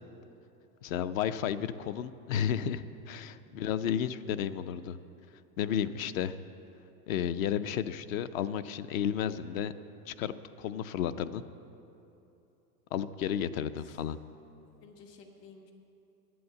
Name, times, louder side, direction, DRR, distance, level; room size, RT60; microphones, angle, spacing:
voice 1, 0.8-5.0 5.6-6.4 7.1-9.7 10.1-11.4 12.9-14.2, left 9 dB, 55° left, 13 dB, 0.6 m, -32 dB
voice 2, 3.3-3.7 13.5-14.0 14.8-15.7, left 4 dB, 70° left, 3 dB, 1.5 m, -55 dB
11.0 x 8.8 x 8.2 m, 2.9 s
supercardioid pair, 135°, 50 cm